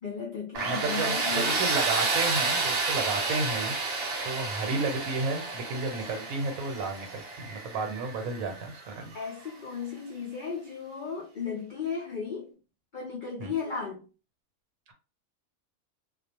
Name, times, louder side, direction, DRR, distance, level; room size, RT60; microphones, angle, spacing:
voice 1, 0.0-1.7 9.1-12.5 12.9-14.1, left 6 dB, 70° left, 0.4 m, -35 dB
Tools, 0.5-9.3, right 3 dB, 55° right, 0.7 m, -30 dB
voice 2, 0.6-3.7 4.2-9.1 13.4-13.5, right 3 dB, 70° right, 1.1 m, -32 dB
2.5 x 2.0 x 2.8 m
omnidirectional pair, 1.5 m